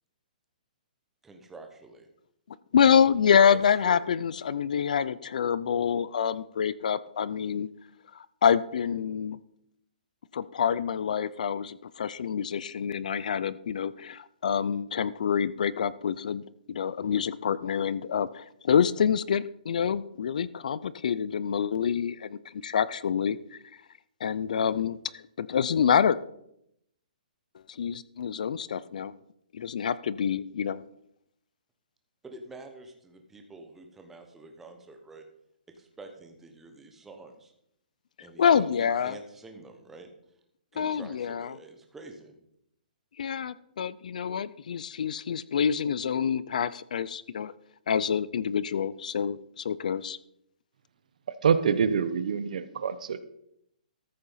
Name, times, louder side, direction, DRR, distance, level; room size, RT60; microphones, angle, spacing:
voice 1, 1.2-2.1 3.5-4.0 32.2-35.3 35.7-37.5 38.2-40.1 40.7-42.4, right 2 dB, 5° right, 4 dB, 1.1 m, -47 dB
voice 2, 2.7-7.7 8.1-9.4 10.3-23.4 24.2-26.2 27.7-29.1 29.6-30.8 38.4-39.2 40.8-41.6 43.2-47.5 47.9-50.2, left 7 dB, 60° left, 18 dB, 0.5 m, -27 dB
voice 3, 51.4-53.2, right 6 dB, 55° right, 13 dB, 0.9 m, -25 dB
14.0 x 6.8 x 5.6 m, 0.76 s
hypercardioid pair, 170°, 5 cm